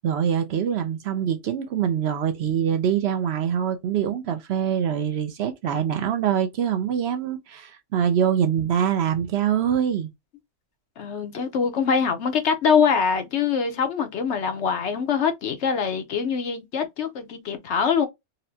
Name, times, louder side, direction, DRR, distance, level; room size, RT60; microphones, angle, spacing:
voice 1, 0.0-10.1, right 8 dB, 65° right, 0.8 m, -24 dB
voice 2, 11.0-18.1, left 6 dB, 70° left, 1.0 m, -23 dB
4.1 x 2.1 x 2.7 m
omnidirectional pair, 1.2 m